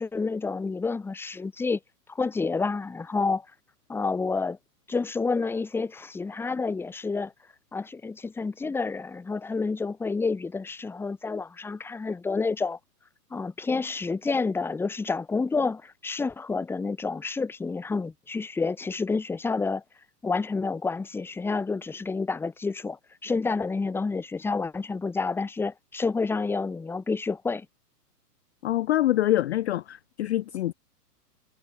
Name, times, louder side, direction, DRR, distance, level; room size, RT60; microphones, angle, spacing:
voice 1, 0.0-1.8 2.1-3.5 3.9-4.6 4.9-7.3 7.7-12.8 13.3-19.8 20.2-27.7, left 4 dB, 5° left, 1.0 m, -29 dB
voice 2, 28.6-30.7, left 14 dB, 45° left, 0.4 m, -25 dB
hypercardioid pair, 125°, 48 cm